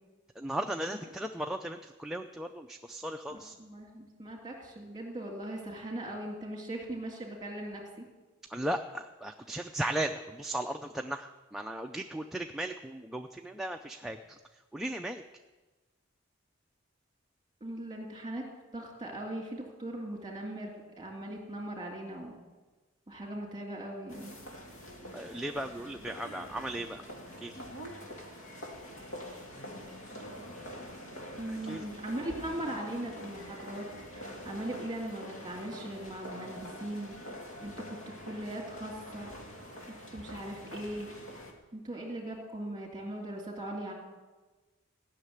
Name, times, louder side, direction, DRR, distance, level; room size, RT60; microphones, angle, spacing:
voice 1, 0.4-3.5 8.5-15.2 25.1-27.0 27.4-27.5 31.5-31.9, right 1 dB, ahead, 3 dB, 0.4 m, -36 dB
voice 2, 3.3-8.1 17.6-18.5 18.7-22.4 23.1-24.4 31.4-33.9 34.1-37.2 37.6-39.3 40.1-41.1 41.7-43.9, right 1 dB, 20° right, 1 dB, 2.8 m, -39 dB
sound 1, 24.1-41.5, equal, 75° left, 2.4 m, -45 dB
16.0 x 6.6 x 9.6 m, 1.2 s
head